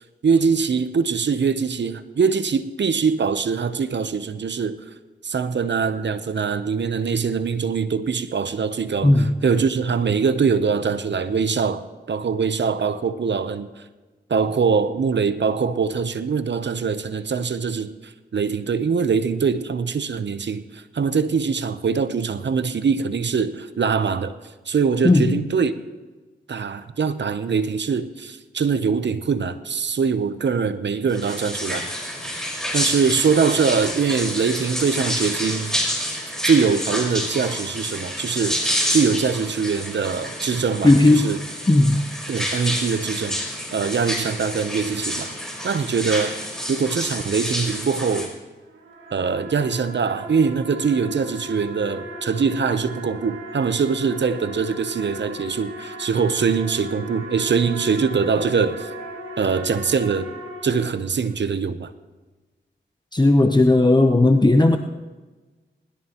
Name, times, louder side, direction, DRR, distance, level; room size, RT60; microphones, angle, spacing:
voice 1, 0.2-4.8 5.2-13.7 14.3-24.3 24.7-25.7 26.5-31.9 32.7-35.8 36.4-38.6 38.9-41.4 42.3-43.4 43.7-45.3 45.6-46.4 46.7-48.3 49.1-58.9 59.4-60.3 60.6-61.9, right 5 dB, 65° right, 0.8 m, -23 dB
voice 2, 9.0-9.4 25.0-25.4 40.8-41.3 41.7-42.1 63.1-64.8, left 2 dB, 20° left, 0.9 m, -15 dB
sound 1, 31.1-48.3, equal, 5° left, 4.9 m, -28 dB
sound 2, 48.6-61.3, equal, 90° right, 1.9 m, -37 dB
20.5 x 13.0 x 3.0 m
cardioid pair, 40°, 20 cm